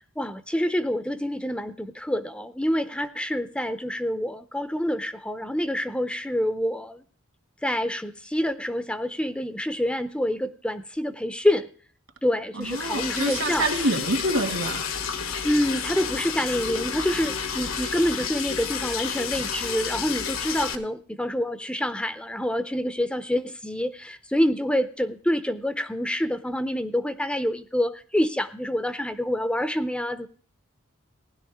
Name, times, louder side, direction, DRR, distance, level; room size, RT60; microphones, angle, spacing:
voice 1, 0.2-7.0 7.6-11.7 12.2-13.7 15.4-30.3, equal, 5° left, 11 dB, 0.5 m, -27 dB
voice 2, 12.5-14.9, right 2 dB, 70° right, 5 dB, 2.2 m, -26 dB
Liquid, 12.6-20.7, left 7 dB, 75° left, 1.3 m, -31 dB
16.0 x 11.0 x 3.5 m, 0.43 s
head